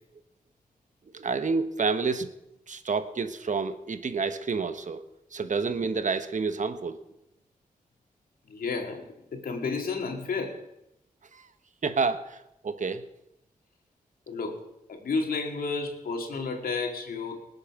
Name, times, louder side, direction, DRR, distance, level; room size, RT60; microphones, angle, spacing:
voice 1, 1.1-2.3 2.7-5.0 5.3-7.0 11.3-11.5 11.8-13.0, right 4 dB, 55° right, 10 dB, 1.3 m, -29 dB
voice 2, 8.5-10.6 14.3-14.6 14.9-17.5, left 4 dB, 80° left, 3 dB, 2.3 m, -31 dB
20.0 x 8.1 x 6.0 m, 0.87 s
cardioid pair, 45°, 15 cm